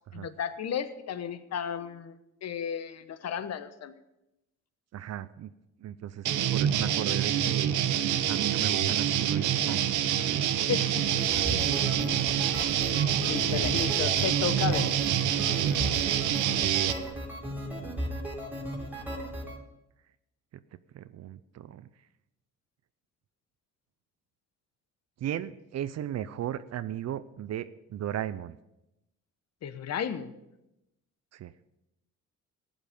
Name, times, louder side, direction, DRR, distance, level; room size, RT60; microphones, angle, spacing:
voice 1, 0.1-2.1 2.4-4.0 10.7-11.1 13.2-14.9 29.6-30.3, left 8 dB, 60° left, 12 dB, 1.0 m, -33 dB
voice 2, 4.9-5.5 5.8-6.3 6.5-7.7 8.3-10.0 10.4-10.9 11.5-11.9 12.9-13.9 17.5-18.1 20.9-21.9 25.2-28.6 31.3-31.5, right 11 dB, 60° right, 14 dB, 0.6 m, -37 dB
sound 1, 6.2-16.9, right 10 dB, 80° right, 0.9 m, -26 dB
sound 2, 10.9-19.6, equal, 5° right, 2.8 m, -36 dB
15.0 x 9.2 x 5.2 m, 0.89 s
cardioid pair, 90°, 30 cm